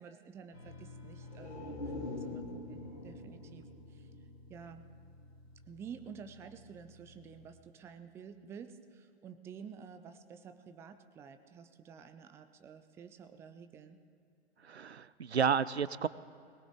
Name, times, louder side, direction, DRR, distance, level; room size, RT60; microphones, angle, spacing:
voice 1, 0.0-3.6 3.9-4.1 4.5-4.9 5.7-14.0, right 6 dB, 10° right, 10 dB, 0.4 m, -51 dB
sound 1, 0.5-7.6, left 2 dB, 70° left, 2.5 m, -54 dB
sound 2, 1.2-4.9 5.2-5.3, left 2 dB, 85° left, 3.4 m, -44 dB
voice 2, 14.6-16.1, right 7 dB, 90° right, 19 dB, 0.5 m, -31 dB
20.5 x 19.0 x 3.6 m, 2.4 s
figure-of-eight pair, 105°, 32 cm